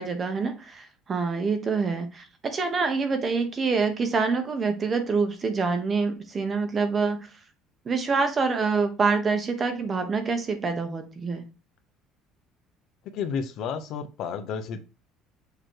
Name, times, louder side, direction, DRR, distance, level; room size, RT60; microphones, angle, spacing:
voice 1, 0.0-7.3 7.8-11.4, right 4 dB, 25° right, 7 dB, 1.1 m, -26 dB
voice 2, 13.1-14.8, left 6 dB, 55° left, 9 dB, 0.8 m, -31 dB
6.8 x 3.0 x 4.6 m, 0.32 s
cardioid pair, 160°, 0 cm